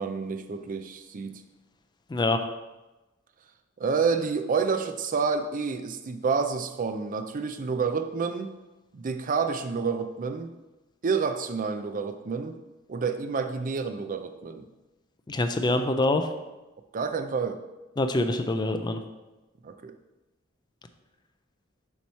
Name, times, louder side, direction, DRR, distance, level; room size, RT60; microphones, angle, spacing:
voice 1, 0.0-1.4 3.8-8.5 8.9-10.5 11.0-12.5 12.9-14.6 16.9-17.6 19.6-19.9, right 5 dB, 40° right, 8 dB, 0.5 m, -29 dB
voice 2, 2.1-2.4 15.3-16.3 18.0-19.0, left 2 dB, 20° left, 7 dB, 0.4 m, -25 dB
7.1 x 3.1 x 5.4 m, 1.1 s
head